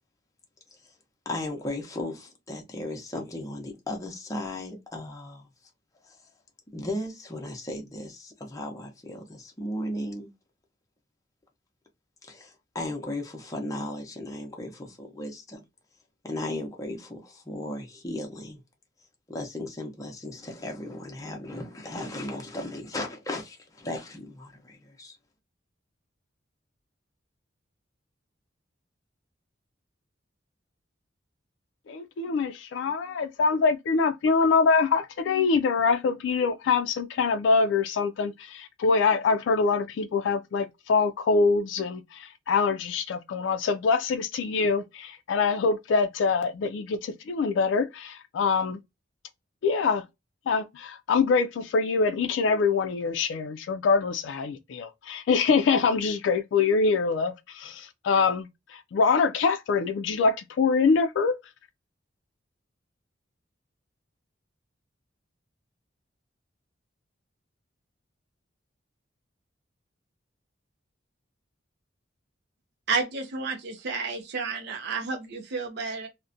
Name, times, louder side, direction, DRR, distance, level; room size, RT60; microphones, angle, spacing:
voice 1, 1.3-5.5 6.0-6.2 6.7-10.3 12.2-15.6 16.2-18.6 19.3-25.2, left 1 dB, 20° left, 0.6 m, -36 dB
voice 2, 31.9-48.8 49.6-50.0 50.5-61.4, left 4 dB, 70° left, 0.3 m, -24 dB
voice 3, 72.9-76.1, right 4 dB, 60° right, 0.5 m, -31 dB
2.4 x 2.1 x 2.5 m
head